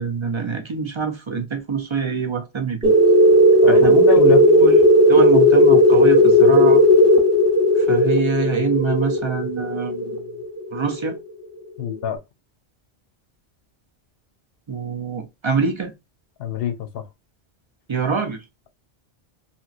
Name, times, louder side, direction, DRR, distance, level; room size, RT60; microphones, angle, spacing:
voice 1, 0.0-2.9 3.7-4.8 5.1-6.8 7.8-10.2 10.7-11.2 14.7-15.9 17.9-18.4, right 6 dB, 45° right, 0.4 m, -25 dB
sound 1, 2.8-11.2, left 1 dB, 5° left, 1.0 m, -14 dB
voice 2, 3.6-4.4 11.8-12.2 16.4-17.0, left 8 dB, 70° left, 0.8 m, -25 dB
2.9 x 2.9 x 2.4 m
omnidirectional pair, 1.1 m